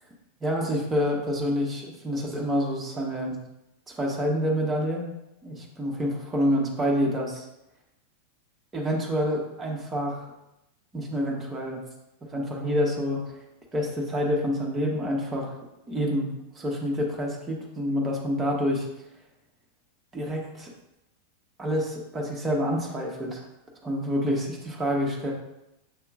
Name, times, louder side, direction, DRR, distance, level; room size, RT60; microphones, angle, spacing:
voice 1, 0.4-3.4 3.9-5.1 5.4-7.5 8.7-10.3 10.9-11.8 12.3-13.4 13.7-15.5 15.9-16.3 16.5-18.9 20.1-20.7 21.6-23.4 23.8-25.3, equal, 15° right, -2 dB, 1.0 m, -27 dB
7.1 x 2.8 x 2.4 m, 0.88 s
figure-of-eight pair, 90°, 0 cm